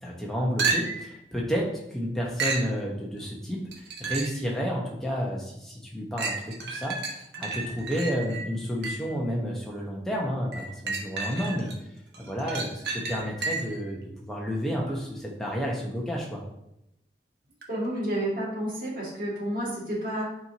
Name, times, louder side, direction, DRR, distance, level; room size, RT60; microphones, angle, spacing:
voice 1, 0.0-6.4 6.7-7.0 7.4-11.7 12.2-16.4, equal, ahead, -3 dB, 1.1 m, -31 dB
sound 1, 0.6-1.2 2.4-2.7 3.7-4.5 5.0-5.1 6.2-9.2 10.5-11.8 12.1-13.8 17.6-17.7, right 4 dB, 75° right, 1.1 m, -32 dB
voice 2, 17.7-20.3, right 1 dB, 50° right, -5 dB, 2.3 m, -30 dB
7.6 x 4.5 x 2.9 m, 0.81 s
head